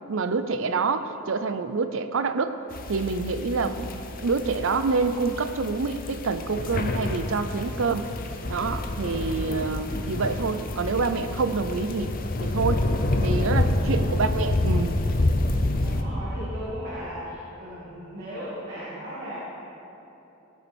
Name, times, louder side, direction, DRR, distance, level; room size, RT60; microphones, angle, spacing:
voice 1, 0.1-2.5 2.9-8.0 8.5-12.1 12.4-12.8 13.2-15.0, right 4 dB, 65° right, 10 dB, 0.5 m, -27 dB
sound 1, 2.7-16.0, left 2 dB, 40° left, 0.6 m, -28 dB
voice 2, 13.7-14.1 15.8-19.4, equal, 40° right, -10 dB, 2.4 m, -36 dB
16.0 x 7.2 x 4.4 m, 3.0 s
head